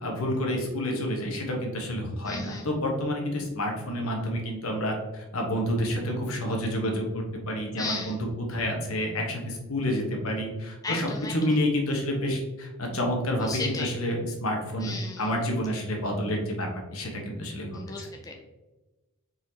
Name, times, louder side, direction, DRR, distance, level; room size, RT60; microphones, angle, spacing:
voice 1, 0.0-8.2 8.5-14.9 15.2-17.7 18.0-18.1, equal, 75° left, 1 dB, 1.1 m, -29 dB
voice 2, 2.2-2.7 7.8-8.2 10.8-11.4 13.4-13.9 14.8-15.3 17.7-18.3, left 3 dB, 15° left, 2 dB, 0.3 m, -35 dB
4.7 x 4.1 x 2.8 m, 1.1 s
head